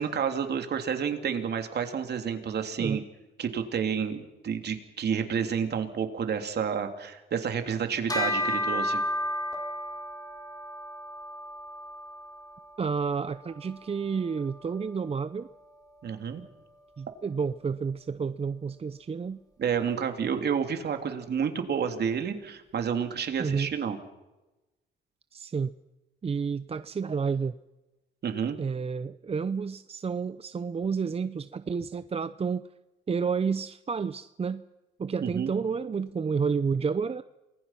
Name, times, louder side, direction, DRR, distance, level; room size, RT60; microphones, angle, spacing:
voice 1, 0.0-3.0 3.4-9.0 16.0-16.4 19.6-24.0 28.2-28.6 35.2-35.5, right 7 dB, 55° right, 6 dB, 3.1 m, -30 dB
Bell, 8.1-17.8, left 1 dB, 20° left, 4.2 m, -35 dB
voice 2, 12.8-15.5 17.0-19.4 23.4-23.7 25.3-25.7 26.2-27.5 28.6-32.6 33.1-34.6 35.0-37.2, right 5 dB, 30° right, 13 dB, 0.7 m, -30 dB
28.5 x 20.0 x 5.9 m, 1.0 s
cardioid pair, 90°, 20 cm